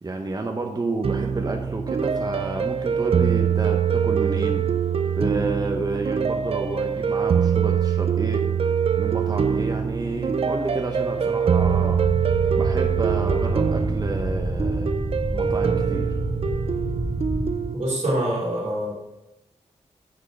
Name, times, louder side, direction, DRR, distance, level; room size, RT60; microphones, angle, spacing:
voice 1, 0.0-4.7 5.2-8.4 9.0-12.0 12.6-14.9 15.3-16.1, right 3 dB, 35° right, 3 dB, 0.9 m, -30 dB
sound 1, 1.0-17.7, right 7 dB, 55° right, 0.5 m, -24 dB
sound 2, 11.6-17.5, equal, 35° left, 2.8 m, -29 dB
voice 2, 17.7-18.9, right 1 dB, 80° right, -4 dB, 2.9 m, -25 dB
10.0 x 5.5 x 3.7 m, 0.95 s
cardioid pair, 70°, 12 cm